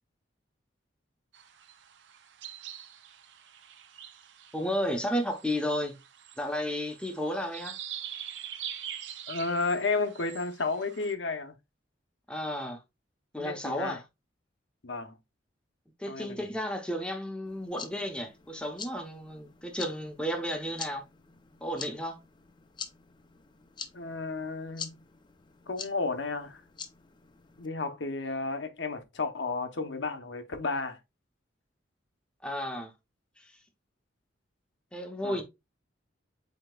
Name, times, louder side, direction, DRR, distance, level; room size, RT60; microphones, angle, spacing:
sound 1, 1.3-11.1, right 10 dB, 70° right, 0.5 m, -44 dB
voice 1, 4.5-6.0 6.4-7.8 12.3-12.8 13.3-14.0 16.0-21.0 21.6-22.2 32.4-32.9 33.4-33.5 34.9-35.4, equal, 5° left, 0.8 m, -33 dB
voice 2, 9.3-11.5 13.4-14.0 14.8-15.2 16.1-16.4 23.9-25.0 25.7-26.6 27.6-31.0 35.2-35.4, left 3 dB, 70° left, 0.8 m, -32 dB
sound 2, 17.5-27.7, left 6 dB, 25° left, 0.5 m, -46 dB
7.7 x 2.9 x 2.3 m
head